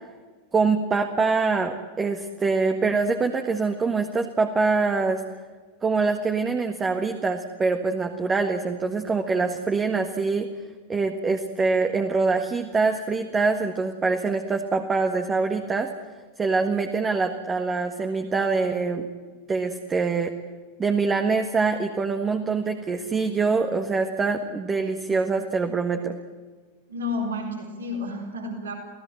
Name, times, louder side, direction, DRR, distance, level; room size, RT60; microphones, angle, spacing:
voice 1, 0.5-5.2 5.8-10.5 10.9-15.9 16.4-19.1 19.5-20.3 20.8-26.1, right 4 dB, 20° right, 6 dB, 1.6 m, -24 dB
voice 2, 26.9-28.7, left 2 dB, 70° right, 2 dB, 4.3 m, -31 dB
30.0 x 17.0 x 7.8 m, 1.5 s
figure-of-eight pair, 90°, 0 cm